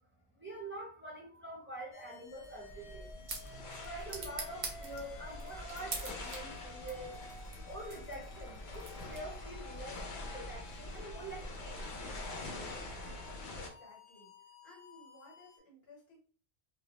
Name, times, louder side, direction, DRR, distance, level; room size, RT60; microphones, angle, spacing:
voice 1, 0.4-3.1 3.7-7.1 7.6-11.9, right 1 dB, 15° right, -3 dB, 0.4 m, -46 dB
sound 1, 1.9-15.6, left 3 dB, 55° left, 0.3 m, -55 dB
sound 2, 2.3-13.7, left 2 dB, 90° left, 0.9 m, -45 dB
sound 3, 2.7-9.6, right 3 dB, 50° right, 0.7 m, -46 dB
voice 2, 13.4-14.3 14.6-16.2, left 2 dB, 70° left, -2 dB, 1.2 m, -58 dB
2.2 x 2.1 x 2.8 m, 0.42 s
omnidirectional pair, 1.1 m